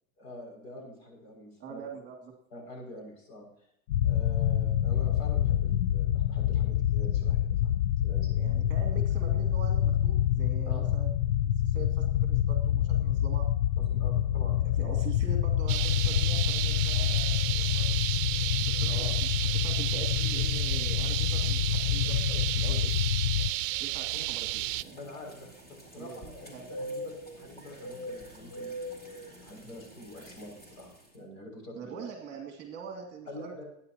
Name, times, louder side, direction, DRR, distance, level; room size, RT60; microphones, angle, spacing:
voice 1, 0.2-1.8 2.5-3.5 4.0-7.7 8.0-8.5 10.6-10.8 13.8-15.0 18.9-19.2 24.1-24.3 24.9-32.1 33.3-33.6, left 1 dB, 65° left, 1 dB, 6.5 m, -46 dB
voice 2, 1.6-2.3 8.3-11.1 11.4-13.5 14.6-18.0 18.6-22.9 23.8-25.0 26.0-26.2 26.5-26.7 30.1-30.2 31.8-33.6, right 6 dB, 25° right, 2 dB, 2.3 m, -44 dB
sound 1, 3.9-23.5, left 11 dB, 85° left, 0.6 m, -27 dB
sound 2, 15.7-24.8, right 17 dB, 65° right, 0.5 m, -32 dB
sound 3, 24.5-31.1, equal, 20° left, 3.1 m, -43 dB
21.5 x 9.8 x 3.0 m, 0.72 s
supercardioid pair, 155°, 42 cm